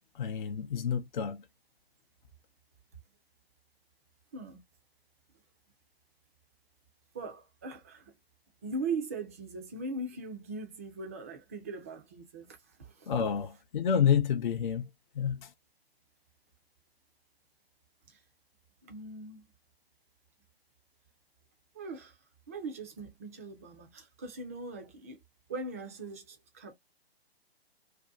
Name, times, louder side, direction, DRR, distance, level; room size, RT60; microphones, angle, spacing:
voice 1, 0.1-1.4 13.1-14.9 15.2-15.5, left 8 dB, 50° left, 0.5 m, -29 dB
voice 2, 7.1-8.1 8.6-13.1 18.1-18.2 18.8-19.5 21.7-22.2 22.5-25.2 25.5-26.7, right 3 dB, 15° right, 0.3 m, -40 dB
2.6 x 2.2 x 3.5 m
figure-of-eight pair, 130°, 32 cm